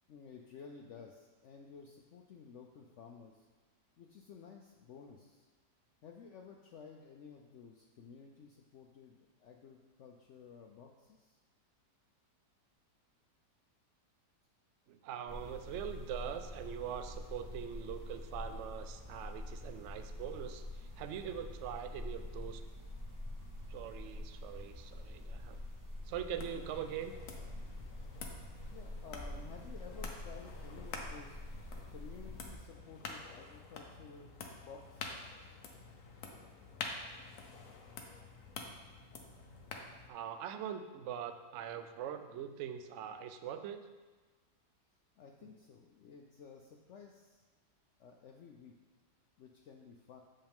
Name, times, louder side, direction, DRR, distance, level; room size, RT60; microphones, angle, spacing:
voice 1, 0.1-3.5 4.0-5.5 6.0-11.4 28.7-31.4 31.9-35.3 45.2-47.4 48.0-48.7 49.4-50.2, left 6 dB, 80° left, 2 dB, 0.6 m, -54 dB
voice 2, 14.9-22.6 23.7-25.6 26.1-27.1 40.1-43.9, right 9 dB, 85° right, 7 dB, 0.6 m, -42 dB
sound 1, 15.3-32.6, left 1 dB, 15° right, 0.7 m, -46 dB
sound 2, 26.3-40.1, left 4 dB, 60° left, 1.0 m, -48 dB
7.7 x 5.5 x 3.5 m, 1.3 s
omnidirectional pair, 1.8 m